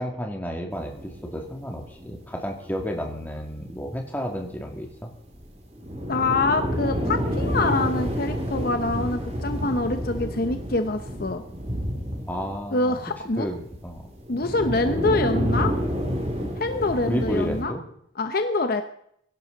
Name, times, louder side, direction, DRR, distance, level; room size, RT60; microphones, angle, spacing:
voice 1, 0.0-5.1 12.3-13.0 13.4-14.0 17.1-17.8, equal, 10° left, 2 dB, 2.2 m, -31 dB
sound 1, 0.7-3.7 4.1-4.2 4.4-4.5 4.7-4.8 5.3-13.0 13.3-17.6, equal, 30° right, 2.4 m, -29 dB
voice 2, 6.1-11.4 12.7-13.5 14.3-15.7 16.6-17.7 18.2-18.8, left 2 dB, 45° left, 8 dB, 0.8 m, -25 dB
21.5 x 11.5 x 4.0 m, 0.69 s
head